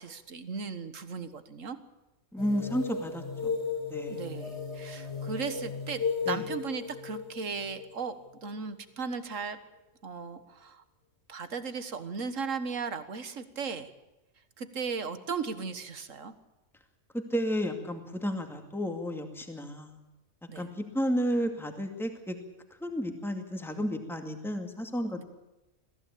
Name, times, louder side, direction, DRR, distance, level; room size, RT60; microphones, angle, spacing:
voice 1, 0.0-1.8 4.1-8.1 8.4-9.6 10.0-10.8 11.3-13.9 14.6-16.3 20.5-20.7 25.2-25.3, right 5 dB, 75° right, 11 dB, 1.9 m, -36 dB
voice 2, 2.3-3.6 3.9-4.3 4.9-5.1 6.3-6.5 17.1-20.0 20.6-22.4 22.8-25.2, equal, ahead, 5 dB, 2.3 m, -32 dB
sound 1, 2.4-8.8, left 5 dB, 55° left, 3.2 m, -35 dB
22.0 x 15.5 x 8.6 m, 0.99 s
omnidirectional pair, 1.3 m